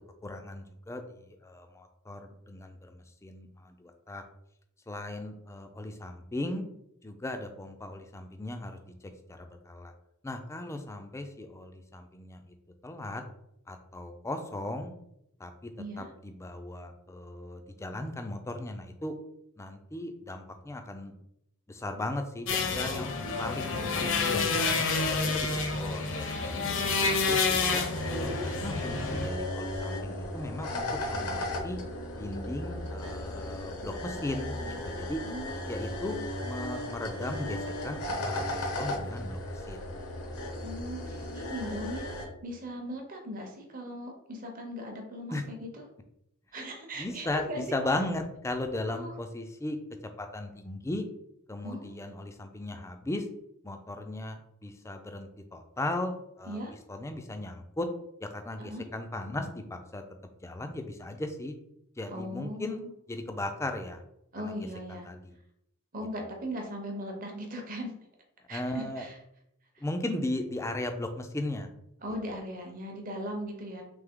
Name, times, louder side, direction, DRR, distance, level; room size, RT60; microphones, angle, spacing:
voice 1, 0.2-4.2 4.9-6.6 7.0-8.8 9.3-9.9 10.2-12.4 12.8-13.2 13.7-14.9 15.4-15.7 16.0-19.1 19.6-21.1 21.7-24.8 25.1-26.1 26.4-26.6 27.1-31.8 32.2-35.2 35.7-39.4 39.7-39.8 41.0-41.2 45.3-45.4 47.0-49.8 50.2-51.1 51.5-53.2 53.6-56.6 56.9-57.9 58.2-60.0 60.4-61.5 62.0-62.8 63.1-64.0 64.4-64.5 64.9-65.4 68.5-69.1 69.8-71.7, left 1 dB, 15° left, 6 dB, 0.4 m, -37 dB
voice 2, 15.8-16.1 26.5-27.0 35.2-35.9 40.6-45.9 46.5-47.6 48.9-49.1 51.6-51.9 56.4-56.7 58.6-58.9 62.1-62.9 64.3-65.1 65.9-68.0 68.5-69.2 69.7-69.8 72.0-73.8, equal, 40° right, 2 dB, 0.7 m, -39 dB
sound 1, 22.5-29.3, left 4 dB, 60° left, 0.7 m, -29 dB
sound 2, 27.9-42.3, left 1 dB, 85° left, 1.0 m, -36 dB
3.4 x 3.2 x 3.6 m, 0.81 s
head